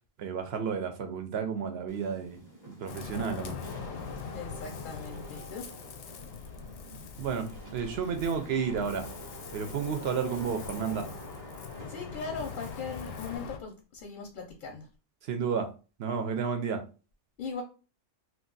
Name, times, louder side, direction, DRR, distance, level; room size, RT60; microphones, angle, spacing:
voice 1, 0.2-2.4 2.7-3.5 7.2-9.1 9.5-11.1 15.2-15.7 16.0-16.8, right 6 dB, 65° right, 6 dB, 0.7 m, -31 dB
Wind / Rain, 1.9-13.4, equal, 20° right, 0.6 m, -48 dB
Ocean, 2.9-13.6, left 6 dB, 85° left, 1.0 m, -42 dB
voice 2, 4.3-5.7 11.9-14.9 17.4-17.6, left 5 dB, 55° left, 2 dB, 0.6 m, -39 dB
2.4 x 2.3 x 3.7 m, 0.33 s
omnidirectional pair, 1.3 m